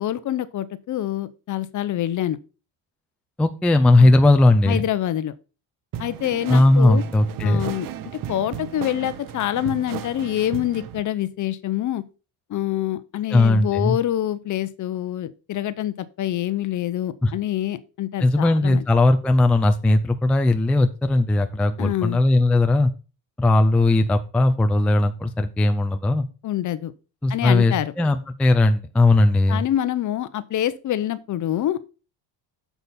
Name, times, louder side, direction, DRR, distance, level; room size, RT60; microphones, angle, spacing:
voice 1, 0.0-2.4 4.0-4.1 4.6-5.3 6.0-7.0 7.4-7.9 8.3-12.0 12.5-18.8 21.8-22.2 26.4-26.9 27.3-27.9 29.5-31.9, left 12 dB, 40° left, 0.7 m, -26 dB
voice 2, 3.4-4.8 6.5-7.7 13.3-14.0 17.2-17.3 18.2-22.9 23.4-26.3 27.2-29.6, left 2 dB, 5° left, 0.3 m, -18 dB
sound 1, 5.9-11.0, right 10 dB, 45° right, 0.8 m, -35 dB
8.1 x 7.0 x 4.2 m
cardioid pair, 160°, 45 cm